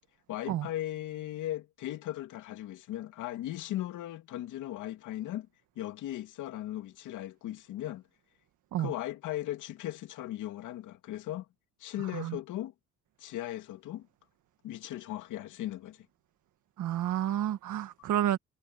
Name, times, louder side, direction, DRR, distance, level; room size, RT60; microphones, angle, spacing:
voice 1, 0.3-5.5 5.8-8.0 8.8-11.5 11.8-12.7 13.2-14.1 14.6-16.1, left 14 dB, 90° left, 2.7 m, -37 dB
voice 2, 16.8-18.4, right 11 dB, 80° right, 1.6 m, -30 dB
cardioid pair, 90°, 30 cm